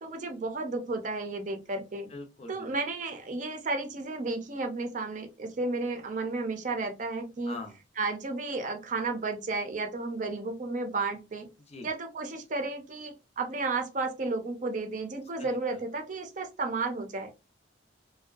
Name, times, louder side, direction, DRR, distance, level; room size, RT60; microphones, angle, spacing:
voice 1, 0.0-2.1 2.5-7.6 8.0-11.5 11.8-17.3, right 3 dB, 40° right, 5 dB, 0.5 m, -33 dB
voice 2, 2.1-2.7 7.5-7.8 11.7-11.9 15.4-15.5, left 2 dB, 35° left, 4 dB, 0.5 m, -42 dB
2.6 x 2.2 x 2.3 m, 0.27 s
head